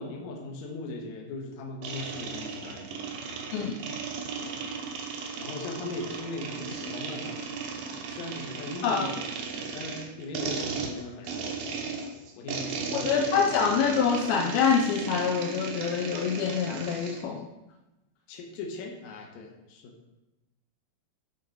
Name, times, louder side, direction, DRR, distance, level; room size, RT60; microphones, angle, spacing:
voice 1, 0.0-3.1 4.4-4.5 5.4-7.5 7.9-9.2 9.5-12.0 12.4-13.5 18.3-19.9, left 2 dB, 65° left, 1 dB, 1.9 m, -39 dB
sound 1, 1.8-17.2, right 5 dB, 70° right, 2.3 m, -36 dB
voice 2, 3.5-4.0 8.8-9.1 12.9-17.5, left 6 dB, 85° left, 3 dB, 2.1 m, -26 dB
11.0 x 3.8 x 4.7 m, 1.0 s
omnidirectional pair, 4.8 m